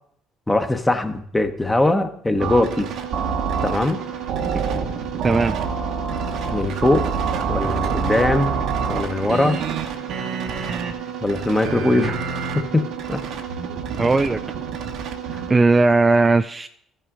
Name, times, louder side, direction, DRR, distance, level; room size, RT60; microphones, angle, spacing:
voice 1, 0.5-2.9 3.6-4.0 6.5-7.1 7.5-8.6 8.9-9.6 11.2-12.2 12.6-13.2 15.3-15.4, left 2 dB, 15° left, 7 dB, 1.0 m, -21 dB
sound 1, 2.4-15.5, right 6 dB, 65° right, 0.9 m, -27 dB
voice 2, 5.2-5.6 14.0-14.4 15.5-16.7, right 3 dB, 25° right, 8 dB, 0.3 m, -17 dB
14.0 x 5.6 x 3.7 m, 0.67 s
supercardioid pair, 70°, 0 cm